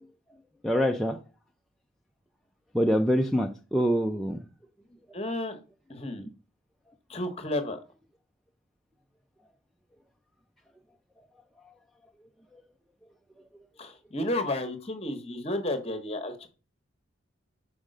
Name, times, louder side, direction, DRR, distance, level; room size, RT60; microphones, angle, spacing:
voice 1, 0.6-1.2 2.7-4.4, equal, ahead, 1 dB, 0.4 m, -25 dB
voice 2, 5.1-5.6 5.9-6.3 7.1-7.8 13.8-16.5, left 1 dB, 30° left, 7 dB, 1.0 m, -32 dB
5.2 x 4.9 x 6.4 m, 0.35 s
head